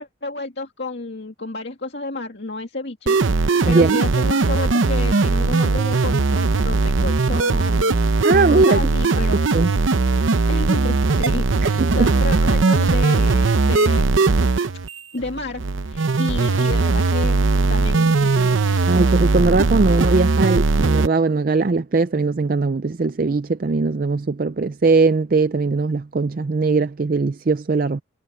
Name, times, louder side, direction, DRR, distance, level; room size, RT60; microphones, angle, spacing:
voice 1, 0.0-9.4 10.5-14.2 15.1-17.4 17.7-18.6, left 2 dB, 60° left, 2.2 m, -31 dB
sound 1, 3.1-21.1, right 3 dB, 85° right, 0.8 m, -19 dB
voice 2, 3.7-4.0 8.2-8.8 9.3-9.7 11.7-12.1 18.9-28.0, right 3 dB, 45° right, 0.4 m, -20 dB
head